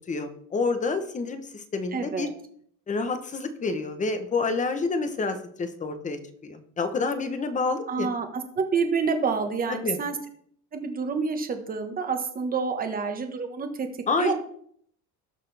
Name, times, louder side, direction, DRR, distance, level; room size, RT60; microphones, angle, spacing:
voice 1, 0.1-2.3 2.9-8.1 9.7-10.0 14.1-14.3, left 3 dB, 20° left, 9 dB, 1.0 m, -28 dB
voice 2, 1.9-2.3 7.9-10.2 10.7-13.9 14.2-14.3, right 5 dB, 25° right, 6 dB, 1.3 m, -28 dB
18.5 x 6.5 x 3.4 m, 0.64 s
cardioid pair, 170°, 36 cm